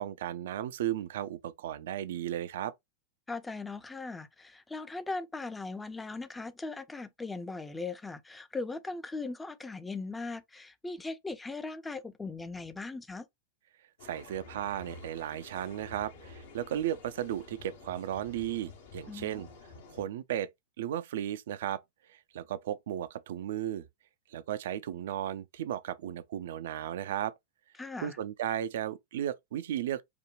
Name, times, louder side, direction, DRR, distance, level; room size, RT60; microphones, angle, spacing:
voice 1, 0.0-2.7 14.0-19.5 19.9-20.5 20.8-21.8 22.1-23.9 24.3-27.3 28.0-30.0, right 11 dB, 60° right, 0.4 m, -35 dB
voice 2, 3.3-13.3 19.1-19.4 27.8-28.2, left 3 dB, 10° left, 0.5 m, -39 dB
sound 1, 14.0-20.0, left 4 dB, 60° left, 0.8 m, -50 dB
5.0 x 2.2 x 3.0 m
figure-of-eight pair, 90°, 0 cm